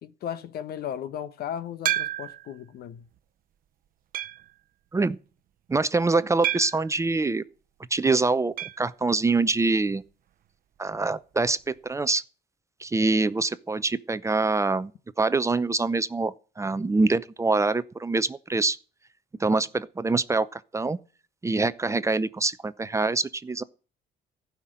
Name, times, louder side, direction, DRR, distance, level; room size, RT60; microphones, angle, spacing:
voice 1, 0.0-3.1, left 9 dB, 65° left, 1.2 m, -36 dB
sound 1, 1.9-2.5 3.2-3.3 4.1-4.5 6.4-6.9 8.6-8.9 9.1-9.2 9.5-9.6 11.6-11.7, right 12 dB, 55° right, 0.7 m, -30 dB
voice 2, 5.7-7.4 7.9-10.0 10.8-12.2 12.8-14.9 15.2-18.8 19.4-21.0 21.4-23.6, right 3 dB, 15° right, 0.7 m, -25 dB
15.0 x 5.9 x 9.9 m
cardioid pair, 110°, 17 cm